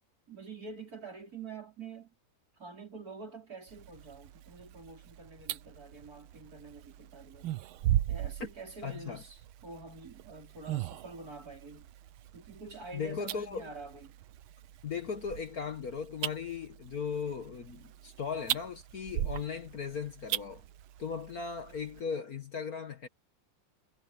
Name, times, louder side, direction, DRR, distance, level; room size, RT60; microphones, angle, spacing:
voice 1, 0.3-2.1 2.6-7.5 8.1-11.9 12.3-14.1, right 4 dB, 45° right, 4.7 m, -47 dB
sound 1, 3.7-22.0, right 13 dB, 80° right, 1.6 m, -39 dB
voice 2, 8.8-9.2 12.9-13.7 14.8-20.6 21.0-23.1, left 6 dB, 50° left, 1.6 m, -37 dB
omnidirectional pair, 2.3 m